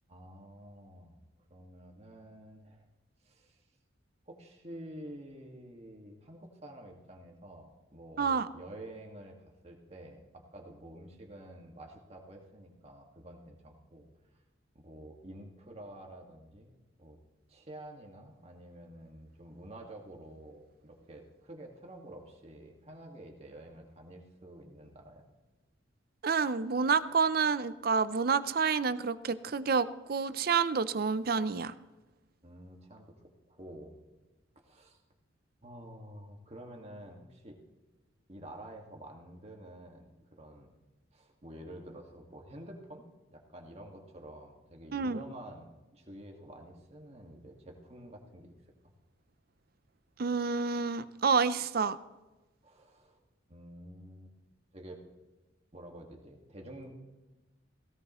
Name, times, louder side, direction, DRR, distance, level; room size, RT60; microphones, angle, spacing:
voice 1, 0.1-1.2 1.5-2.9 3.2-3.6 4.3-9.4 9.6-14.1 14.8-16.7 17.0-17.2 17.5-25.3 32.4-33.2 33.5-33.9 34.6-35.0 35.6-37.6 38.3-40.7 41.1-43.0 43.3-48.6 52.6-53.2 53.5-54.3 54.7-55.0 55.7-56.9, right 1 dB, 35° right, 2 dB, 1.8 m, -49 dB
voice 2, 8.2-8.5 26.2-31.7 44.9-45.2 50.2-52.0, right 5 dB, 50° right, 15 dB, 0.5 m, -29 dB
17.0 x 16.5 x 3.1 m, 1.1 s
head